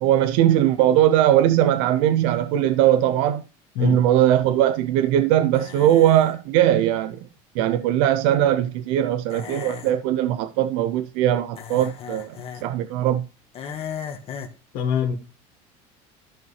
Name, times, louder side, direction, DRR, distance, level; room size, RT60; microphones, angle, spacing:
voice 1, 0.0-3.4 3.8-7.2 7.6-13.3, right 12 dB, 85° right, 0.6 m, -20 dB
sound 1, 5.5-6.4 9.3-9.9 11.6-12.6 13.5-14.6, left 7 dB, 40° left, 1.5 m, -36 dB
voice 2, 14.7-15.1, left 6 dB, 75° left, 1.5 m, -22 dB
13.5 x 5.3 x 3.2 m
cardioid pair, 120°, 16 cm